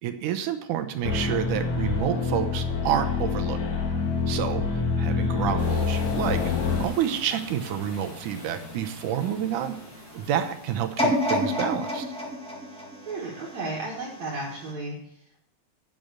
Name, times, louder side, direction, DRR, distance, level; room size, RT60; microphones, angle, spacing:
voice 1, 0.0-3.6 4.3-4.7 5.0-9.7 10.1-12.1, right 10 dB, 85° right, 8 dB, 2.4 m, -29 dB
sound 1, 1.0-6.9, left 5 dB, 65° left, 2.8 m, -26 dB
sound 2, 5.6-12.3, left 1 dB, 40° left, 3.6 m, -43 dB
sound 3, 11.0-14.0 14.6-14.7, left 1 dB, 5° left, 1.0 m, -28 dB
voice 2, 13.1-15.0, right 2 dB, 65° right, -3 dB, 2.7 m, -33 dB
9.3 x 7.3 x 6.5 m, 0.74 s
omnidirectional pair, 3.5 m